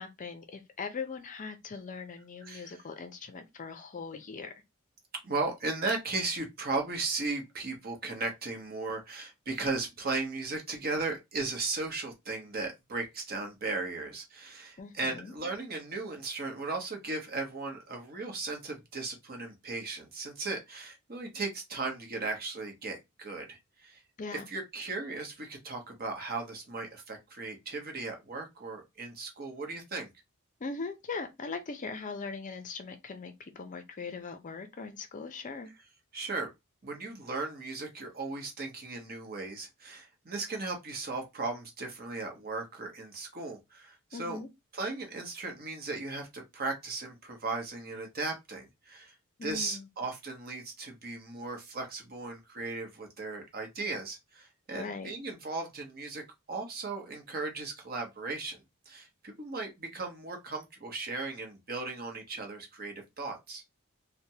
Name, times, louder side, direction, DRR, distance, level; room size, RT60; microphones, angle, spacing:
voice 1, 0.0-4.5 14.8-15.3 24.2-24.4 30.6-35.7 44.1-44.5 49.4-49.9 54.7-55.1, left 4 dB, 35° left, 0.5 m, -40 dB
voice 2, 2.4-2.8 5.2-24.0 24.3-30.1 36.1-36.5 36.8-44.4 44.7-49.1 49.4-56.2 56.5-58.6 58.9-63.6, right 3 dB, 45° right, 0.9 m, -36 dB
3.3 x 2.2 x 2.7 m
head